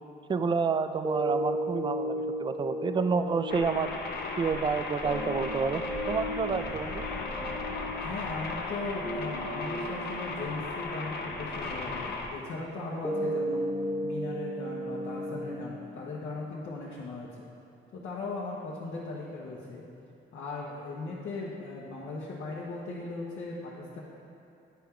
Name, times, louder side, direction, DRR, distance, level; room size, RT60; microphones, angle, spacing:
voice 1, 0.3-3.9 4.4-7.1, right 5 dB, 25° right, 10 dB, 0.3 m, -29 dB
sound 1, 1.0-17.0, equal, ahead, 1.0 m, -36 dB
sound 2, 3.5-12.3, left 3 dB, 55° left, 0.9 m, -36 dB
voice 2, 8.0-13.7 14.0-17.3 17.9-19.8 20.3-24.0, left 3 dB, 75° left, -6 dB, 1.0 m, -38 dB
10.5 x 4.5 x 3.7 m, 2.7 s
cardioid pair, 90°, 20 cm